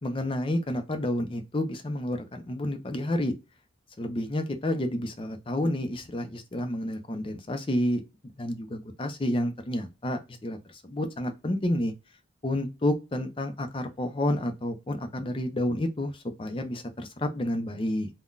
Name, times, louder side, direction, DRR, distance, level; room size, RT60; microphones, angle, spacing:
voice 1, 0.0-3.3 4.0-8.0 8.4-11.9 12.4-18.1, left 1 dB, 25° left, 0.5 m, -30 dB
3.6 x 2.2 x 2.4 m
head